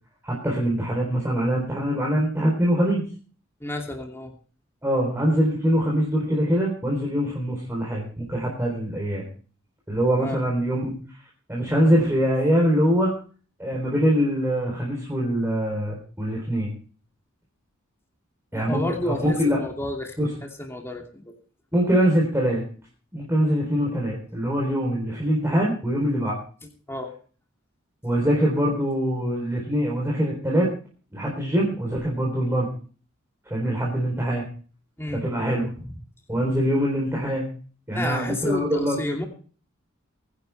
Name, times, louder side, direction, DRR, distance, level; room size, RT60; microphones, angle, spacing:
voice 1, 0.2-3.0 4.8-9.2 9.9-11.0 11.5-13.1 13.6-16.7 18.5-19.6 20.2-20.3 21.7-22.6 23.1-26.4 28.0-30.7 31.1-32.7 33.5-34.4 35.1-35.7 36.3-37.5 37.9-39.0, equal, 10° right, -3 dB, 4.0 m, -23 dB
voice 2, 3.6-4.3 10.2-10.4 18.5-20.2 20.6-21.3 26.9-27.1 35.0-35.2 37.9-39.3, left 1 dB, 10° left, 1 dB, 2.6 m, -30 dB
22.0 x 11.0 x 3.5 m, 0.40 s
head